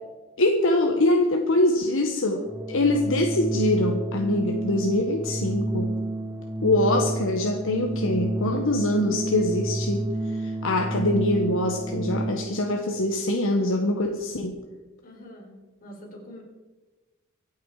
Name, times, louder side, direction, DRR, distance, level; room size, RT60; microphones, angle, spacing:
voice 1, 0.4-5.9 6.6-14.6, left 1 dB, 65° left, 3 dB, 1.4 m, -24 dB
Organ, 2.4-12.7, right 1 dB, 10° right, 1.0 m, -30 dB
voice 2, 10.7-11.2 15.0-16.4, equal, 40° left, -1 dB, 4.7 m, -45 dB
24.5 x 8.7 x 4.9 m, 1.2 s
head